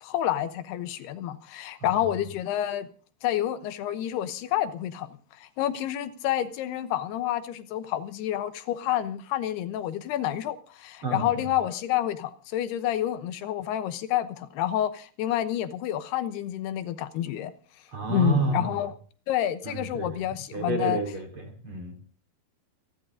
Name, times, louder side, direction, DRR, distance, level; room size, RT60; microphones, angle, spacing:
voice 1, 0.0-2.9 3.2-17.5 18.1-18.9 19.3-21.0, left 12 dB, 80° left, 3.0 m, -29 dB
voice 2, 17.9-18.7 19.6-20.2 20.5-22.0, right 3 dB, 35° right, 3.3 m, -30 dB
28.0 x 10.5 x 3.8 m
omnidirectional pair, 4.6 m